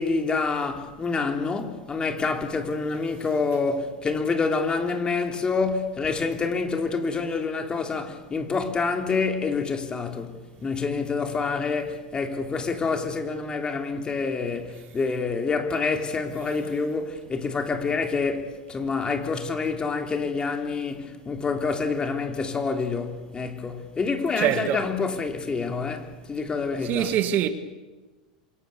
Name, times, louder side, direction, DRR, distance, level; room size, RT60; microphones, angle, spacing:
voice 1, 0.0-27.1, left 4 dB, 20° left, 3.3 m, -27 dB
voice 2, 24.4-24.9 26.8-27.5, right 11 dB, 45° right, 1.9 m, -24 dB
27.0 x 23.5 x 7.1 m
hypercardioid pair, 90°, 4 cm